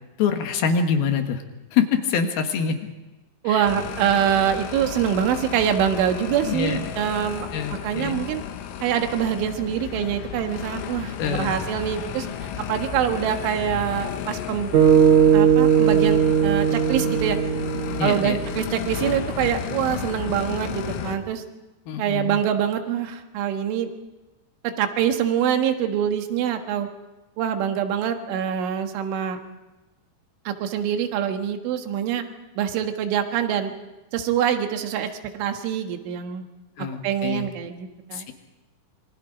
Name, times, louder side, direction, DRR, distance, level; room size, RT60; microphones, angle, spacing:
voice 1, 0.2-1.4 1.7-2.8 3.4-3.7 6.4-6.9 7.5-8.2 11.2-11.6 18.0-18.4 21.9-22.4 36.8-37.5 38.1-38.3, left 6 dB, 65° left, 5 dB, 2.9 m, -25 dB
voice 2, 3.4-7.5 7.8-8.4 8.8-12.3 12.7-14.7 15.3-17.4 18.0-21.4 22.0-23.9 24.6-26.9 27.4-29.4 30.5-32.2 32.6-33.7 34.1-36.5 37.0-38.3, right 9 dB, 80° right, 6 dB, 3.9 m, -25 dB
sound 1, 3.7-21.2, left 8 dB, 85° left, 3.8 m, -33 dB
sound 2, 14.7-19.1, right 8 dB, 50° right, 4.8 m, -19 dB
27.0 x 24.0 x 5.0 m, 1.1 s
omnidirectional pair, 5.5 m